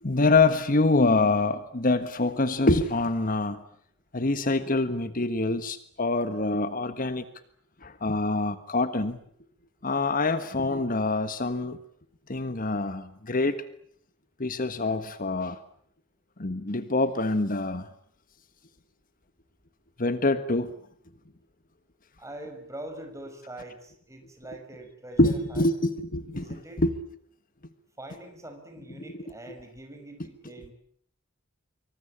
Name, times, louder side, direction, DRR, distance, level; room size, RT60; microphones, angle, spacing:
voice 1, 0.0-3.6 4.1-7.2 7.8-9.2 9.8-11.8 12.3-13.6 14.4-15.6 16.4-17.9 20.0-20.7 25.2-27.0 29.0-29.3, left 2 dB, 45° left, 12 dB, 1.4 m, -25 dB
voice 2, 22.2-25.7 26.3-26.8 28.0-30.7, right 1 dB, 15° right, 6 dB, 6.0 m, -43 dB
26.0 x 24.0 x 8.7 m, 0.62 s
head